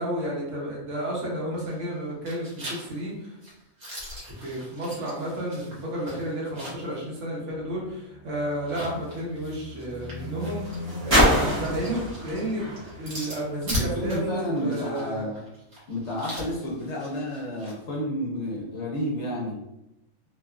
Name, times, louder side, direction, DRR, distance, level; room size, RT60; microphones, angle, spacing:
voice 1, 0.0-3.4 4.3-12.6 13.0-15.2, right 1 dB, 65° right, -4 dB, 1.1 m, -32 dB
sound 1, 1.5-1.9 2.3-7.0 7.3-7.4 8.5-17.8, equal, 85° right, 1.4 m, -39 dB
sound 2, 7.6-14.1 14.9-15.0, equal, 25° right, 0.7 m, -28 dB
voice 2, 13.7-15.4 15.9-19.6, equal, 60° left, -4 dB, 0.8 m, -31 dB
2.9 x 2.3 x 2.3 m, 0.89 s
omnidirectional pair, 1.5 m